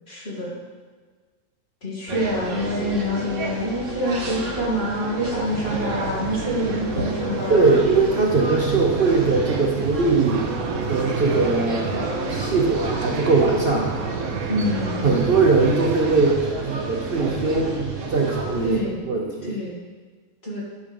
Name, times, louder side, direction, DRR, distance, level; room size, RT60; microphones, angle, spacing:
voice 1, 0.1-0.5 1.8-7.7 14.5-15.3 18.6-19.0 19.4-19.8 20.4-20.6, left 1 dB, 45° left, -5 dB, 2.6 m, -26 dB
sound 1, 2.1-18.8, right 3 dB, 60° right, 1.4 m, -30 dB
sound 2, 5.5-16.4, right 5 dB, 80° right, 1.3 m, -32 dB
voice 2, 7.5-10.5 10.9-13.9 15.0-16.4 16.7-17.8 18.1-18.7 19.0-19.6, right 3 dB, 45° right, 0 dB, 1.0 m, -20 dB
11.0 x 5.7 x 5.2 m, 1.5 s
omnidirectional pair, 1.5 m